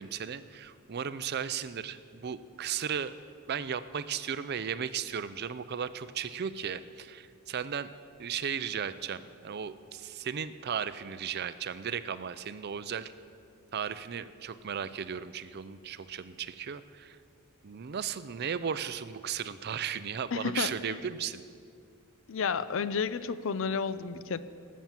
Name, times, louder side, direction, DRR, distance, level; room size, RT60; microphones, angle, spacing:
voice 1, 0.0-3.2 3.5-7.9 8.2-13.1 13.7-17.2 17.6-21.4, right 7 dB, 50° right, 13 dB, 0.5 m, -35 dB
voice 2, 20.3-20.7 22.3-24.4, left 6 dB, 65° left, 14 dB, 0.5 m, -31 dB
18.0 x 7.4 x 7.4 m, 2.3 s
head